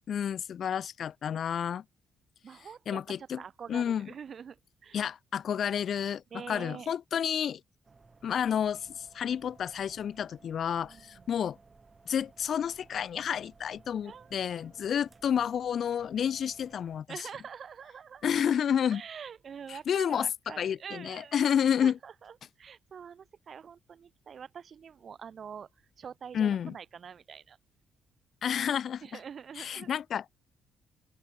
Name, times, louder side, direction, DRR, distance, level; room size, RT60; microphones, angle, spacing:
voice 1, 0.1-1.8 2.9-3.4 3.7-4.1 4.9-7.6 8.2-11.6 12.1-17.2 18.2-19.0 19.7-22.0 26.3-26.7 28.4-29.0 29.6-30.3, left 8 dB, 60° left, 0.5 m, -30 dB
voice 2, 2.4-5.0 6.3-6.9 10.8-11.2 14.0-14.5 14.8-15.0 17.1-18.4 18.9-21.5 21.8-25.7 26.0-27.6 29.0-29.9, right 7 dB, 50° right, 2.2 m, -45 dB
sound 1, 7.8-17.0, right 4 dB, 30° right, 6.0 m, -58 dB
open air
cardioid pair, 90°, 0 cm